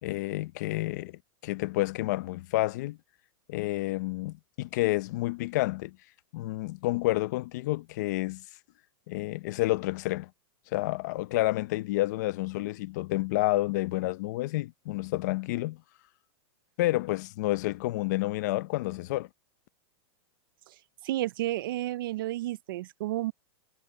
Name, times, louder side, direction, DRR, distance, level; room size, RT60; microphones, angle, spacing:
voice 1, 0.0-3.0 3.5-6.0 6.3-8.4 9.1-10.3 10.7-15.8 16.8-19.3, left 18 dB, 45° left, 0.6 m, -29 dB
voice 2, 21.0-23.3, right 15 dB, 55° right, 0.4 m, -31 dB
supercardioid pair, 170°, 14 cm